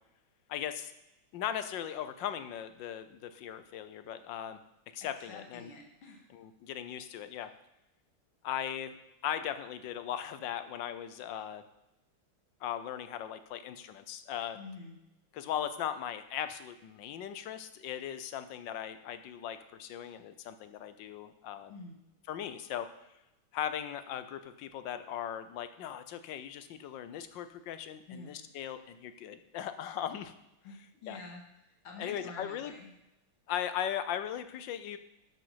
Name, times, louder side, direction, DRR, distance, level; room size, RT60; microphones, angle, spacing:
voice 1, 0.5-0.9 1.3-4.6 4.9-5.7 6.4-7.5 8.4-8.9 9.2-11.6 12.6-14.6 15.3-21.7 22.3-22.9 23.5-30.3 31.1-31.2 32.0-32.7 33.5-35.0, left 10 dB, 70° left, 11 dB, 1.3 m, -38 dB
voice 2, 5.0-6.3 14.5-15.0 21.7-22.0 28.1-28.5 30.6-32.9, left 3 dB, 85° left, 0 dB, 2.5 m, -48 dB
12.5 x 5.4 x 5.7 m, 0.91 s
omnidirectional pair, 2.3 m